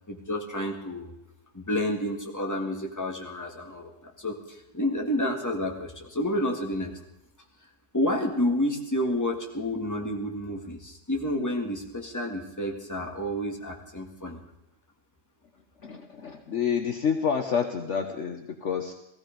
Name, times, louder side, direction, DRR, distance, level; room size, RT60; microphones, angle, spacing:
voice 1, 0.1-1.1 1.5-6.9 7.9-14.4, left 1 dB, 10° left, 2 dB, 1.9 m, -30 dB
voice 2, 15.8-18.9, left 7 dB, 55° left, 5 dB, 1.2 m, -28 dB
16.5 x 15.5 x 5.2 m, 0.86 s
omnidirectional pair, 1.7 m